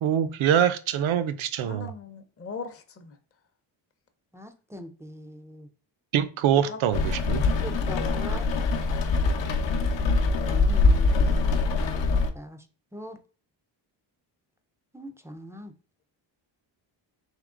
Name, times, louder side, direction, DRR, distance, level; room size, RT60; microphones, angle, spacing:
voice 1, 0.0-1.9 6.1-7.4, right 9 dB, 75° right, 12 dB, 0.6 m, -24 dB
voice 2, 1.6-3.2 6.6-6.8, left 4 dB, 30° left, 5 dB, 0.6 m, -39 dB
voice 3, 4.3-5.7 7.6-8.5 9.6-9.7 9.9-11.6 11.9-12.0 12.3-12.7 12.9-13.2 14.9-15.7, equal, 5° right, 8 dB, 0.3 m, -42 dB
Rain, 6.9-12.3, left 3 dB, 65° left, 0.7 m, -23 dB
3.7 x 2.9 x 3.6 m, 0.37 s
cardioid pair, 115°, 48 cm